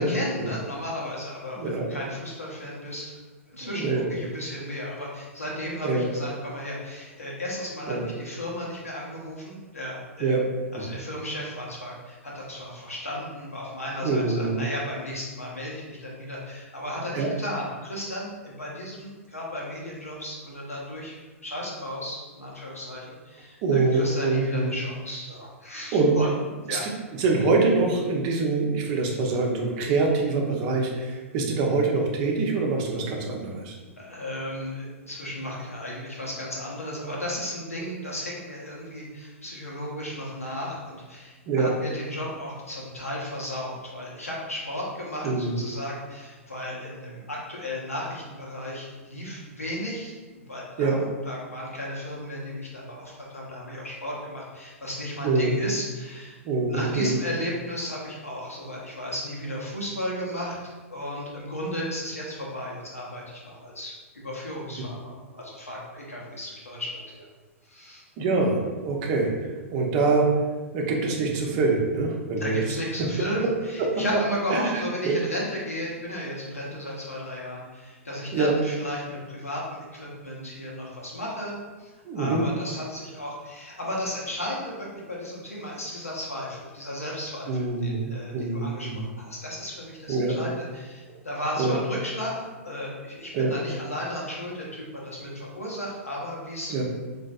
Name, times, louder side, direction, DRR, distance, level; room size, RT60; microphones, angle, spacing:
voice 1, 0.0-3.1 3.5-10.4 10.7-26.3 26.6-26.8 34.0-50.1 50.5-56.4 56.6-67.3 67.7-68.0 72.4-96.8, left 1 dB, 90° left, -4 dB, 0.9 m, -34 dB
voice 2, 1.6-1.9 3.6-4.0 5.8-6.1 7.9-8.1 10.2-10.4 14.0-14.6 17.1-17.3 23.6-24.7 25.9-26.2 26.7-33.7 41.5-41.7 45.2-45.5 50.8-51.0 55.2-55.6 56.4-57.2 68.2-70.3 70.7-72.6 73.8-73.9 74.5-75.2 78.3-78.5 82.1-82.5 87.5-89.0 90.1-90.4 91.6-91.8 93.3-93.5 96.7-96.8, right 3 dB, 40° right, 0 dB, 0.7 m, -25 dB
4.0 x 2.5 x 2.4 m, 1.3 s
figure-of-eight pair, 105°, 8 cm